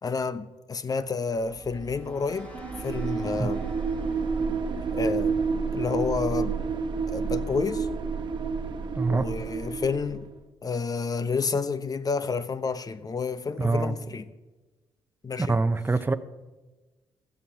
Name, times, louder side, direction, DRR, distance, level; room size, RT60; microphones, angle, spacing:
voice 1, 0.0-3.7 4.9-5.4 5.7-6.6 7.1-7.9 9.1-10.3 10.6-14.3 15.2-15.6, left 5 dB, 40° left, 0.9 m, -30 dB
sound 1, 1.2-6.3, equal, 15° left, 3.9 m, -46 dB
sound 2, 2.5-10.3, right 5 dB, 50° right, 1.2 m, -29 dB
voice 2, 9.0-9.3 13.6-14.0 15.4-16.1, right 3 dB, 20° right, 0.9 m, -24 dB
16.5 x 12.5 x 2.9 m
supercardioid pair, 55°, 10 cm